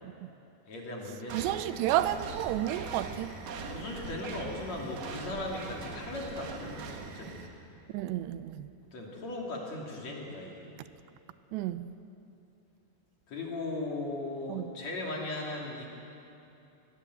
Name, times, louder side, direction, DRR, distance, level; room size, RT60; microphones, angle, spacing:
voice 1, 0.7-1.6 3.7-7.5 8.9-10.7 13.3-15.9, left 2 dB, 45° left, 3.6 m, -38 dB
sound 1, 1.3-7.5, right 4 dB, 65° right, 3.3 m, -41 dB
voice 2, 1.3-3.3 7.9-8.7 11.5-11.9 14.5-14.7, right 13 dB, 85° right, 2.7 m, -31 dB
22.0 x 21.0 x 7.9 m
omnidirectional pair, 4.9 m